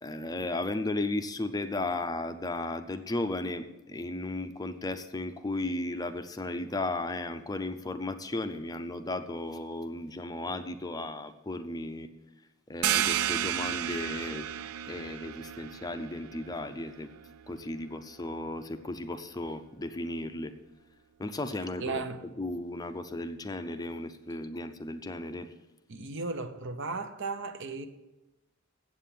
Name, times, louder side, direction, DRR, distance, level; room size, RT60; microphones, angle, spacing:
voice 1, 0.0-12.1 12.7-14.5 14.9-17.1 17.5-20.5 21.2-22.1 22.4-25.5, left 2 dB, 20° left, 0.5 m, -35 dB
sound 1, 12.8-18.2, right 11 dB, 85° right, 0.4 m, -33 dB
voice 2, 21.8-22.2 25.9-27.9, right 3 dB, 60° right, 0.8 m, -35 dB
8.0 x 7.5 x 8.4 m
head